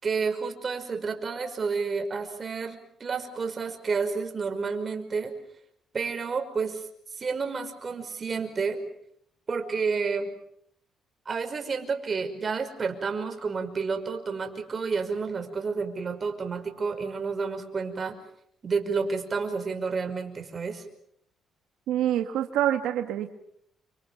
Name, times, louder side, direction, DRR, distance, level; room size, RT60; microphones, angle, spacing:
voice 1, 0.0-5.3 5.9-6.8 7.2-8.8 9.5-10.3 11.3-18.2 18.6-20.8, right 5 dB, 35° right, 6 dB, 5.5 m, -30 dB
voice 2, 21.9-23.3, right 11 dB, 90° right, 6 dB, 1.7 m, -26 dB
29.5 x 26.0 x 7.3 m, 0.70 s
cardioid pair, 100°, 0 cm